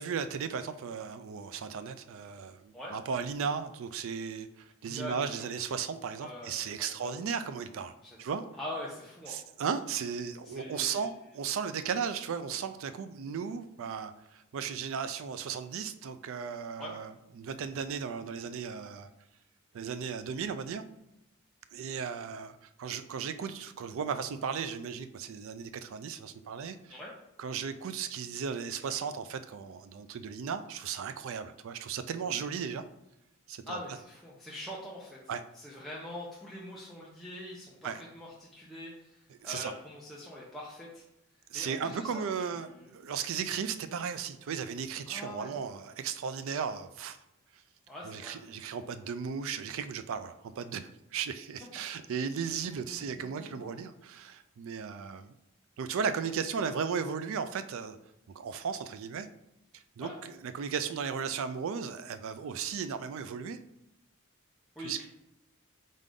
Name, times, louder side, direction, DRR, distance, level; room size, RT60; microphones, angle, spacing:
voice 1, 0.0-8.4 9.3-19.1 19.7-20.8 21.7-27.0 27.4-32.8 33.5-33.8 35.3-35.4 37.8-38.0 39.4-39.7 41.5-47.2 48.0-50.8 51.1-55.3 55.8-58.0 58.3-59.3 59.7-63.6 64.8-65.1, right 6 dB, 65° right, 11 dB, 0.4 m, -36 dB
voice 2, 4.8-5.5 6.2-7.1 8.0-9.4 10.4-11.1 16.8-16.9 26.9-27.1 33.7-35.2 35.5-41.0 41.5-42.9 45.1-45.5 47.9-48.3 52.9-53.8 60.0-60.2 64.8-65.1, left 1 dB, ahead, -6 dB, 0.6 m, -44 dB
3.8 x 3.7 x 3.6 m, 0.87 s
head